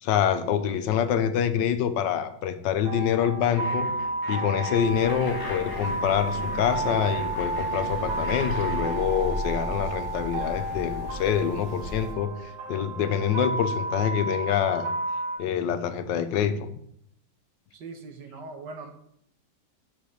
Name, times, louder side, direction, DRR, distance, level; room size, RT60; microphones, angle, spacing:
voice 1, 0.0-3.9 4.3-14.9 15.4-16.7, left 8 dB, 80° left, 10 dB, 1.4 m, -26 dB
sound 1, 2.8-15.4, right 2 dB, 50° right, 1.9 m, -32 dB
sound 2, 3.5-9.0, left 1 dB, 15° left, 1.2 m, -39 dB
sound 3, 4.8-12.1, left 1 dB, 35° left, 1.7 m, -37 dB
voice 2, 17.7-18.9, right 3 dB, 75° right, 5 dB, 1.8 m, -40 dB
6.8 x 5.9 x 6.5 m, 0.72 s
omnidirectional pair, 1.9 m